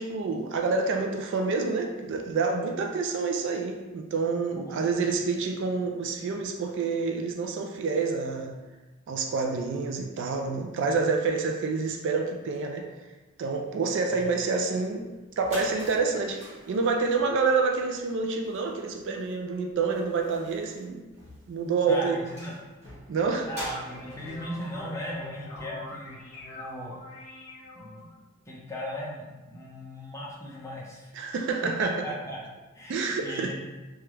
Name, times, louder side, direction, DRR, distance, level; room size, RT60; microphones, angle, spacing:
voice 1, 0.0-8.5 9.1-12.8 13.4-15.1 15.4-16.4 16.7-21.0 21.5-22.2 23.1-23.5 31.1-31.9 32.9-33.5, right 4 dB, 55° right, 3 dB, 0.3 m, -28 dB
voice 2, 4.6-5.1 14.1-14.3 21.9-22.6 23.5-26.2 26.5-27.0 27.7-28.1 28.5-31.1 31.6-32.5 32.7-33.5, equal, 15° left, -5 dB, 0.5 m, -37 dB
sound 1, 15.3-26.1, equal, 30° right, 1.3 m, -46 dB
sound 2, 22.9-28.1, left 1 dB, 70° left, 0.8 m, -44 dB
3.2 x 2.3 x 3.0 m, 1.1 s
head